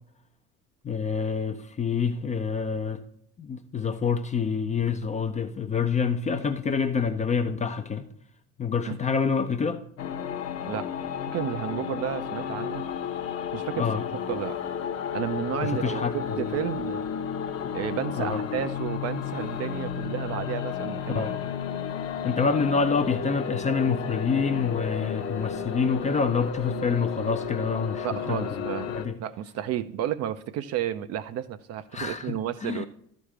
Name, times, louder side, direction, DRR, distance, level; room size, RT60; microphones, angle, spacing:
voice 1, 0.8-3.0 3.4-8.1 8.6-9.8 13.8-14.0 15.6-16.5 18.2-18.4 21.1-21.4 22.2-29.2 31.9-32.3 32.6-32.9, left 5 dB, 15° left, 0.5 m, -27 dB
sound 1, 10.0-29.0, left 7 dB, 35° left, 0.8 m, -32 dB
voice 2, 11.3-12.8 13.5-13.9 14.3-14.6 15.1-17.0 17.7-21.3 28.0-28.9 29.2-32.9, right 11 dB, 35° right, 0.5 m, -32 dB
12.5 x 5.1 x 3.2 m
figure-of-eight pair, 60°, 44 cm